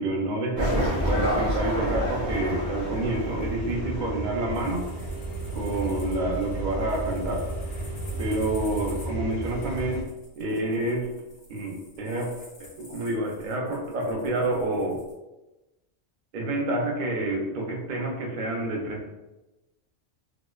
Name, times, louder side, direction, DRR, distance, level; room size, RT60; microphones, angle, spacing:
voice 1, 0.0-4.9 5.5-7.5 8.2-10.0 10.4-11.1 11.5-12.3 12.6-15.0 16.3-19.0, right 1 dB, 55° right, 0 dB, 0.6 m, -28 dB
sound 1, 0.6-4.4 4.7-4.8, equal, 25° left, 0.7 m, -28 dB
sound 2, 1.8-10.0, right 2 dB, 60° left, 0.9 m, -34 dB
sound 3, 4.5-15.1, left 1 dB, 80° left, 1.1 m, -51 dB
2.8 x 2.0 x 2.2 m, 1.0 s
omnidirectional pair, 1.2 m